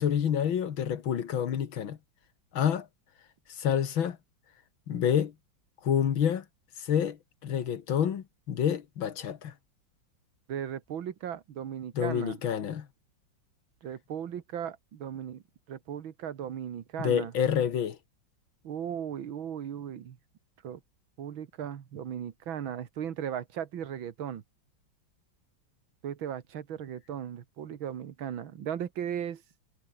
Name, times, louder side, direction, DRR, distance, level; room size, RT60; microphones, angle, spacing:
voice 1, 0.0-2.0 2.5-2.9 3.6-4.2 4.9-5.3 5.8-6.4 6.9-7.2 7.4-9.5 12.0-12.9 17.0-18.0, left 8 dB, 90° left, 2.3 m, -28 dB
voice 2, 10.5-12.4 13.8-15.4 15.7-17.3 18.6-20.2 20.6-20.8 21.2-24.4 26.0-29.4, right 9 dB, 85° right, 2.2 m, -37 dB
omnidirectional pair, 2.1 m